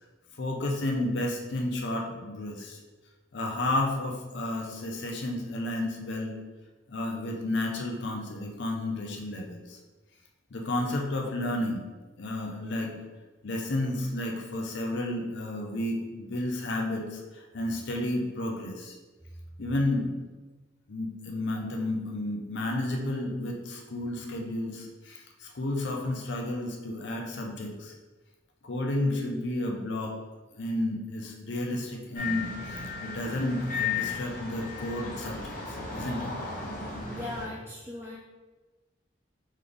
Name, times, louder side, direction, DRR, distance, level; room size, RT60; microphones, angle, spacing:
voice 1, 0.4-2.8 3.3-6.4 6.9-9.8 10.5-11.8 12.2-13.0 13.4-17.2 17.5-18.9 19.6-20.2 20.9-27.9 28.6-30.1 30.6-36.3, left 1 dB, 65° left, 1 dB, 0.6 m, -31 dB
sound 1, 32.2-37.5, left 5 dB, 45° left, 0.9 m, -35 dB
voice 2, 37.0-38.2, left 2 dB, 10° right, -4 dB, 0.3 m, -38 dB
3.4 x 3.2 x 3.8 m, 1.2 s
head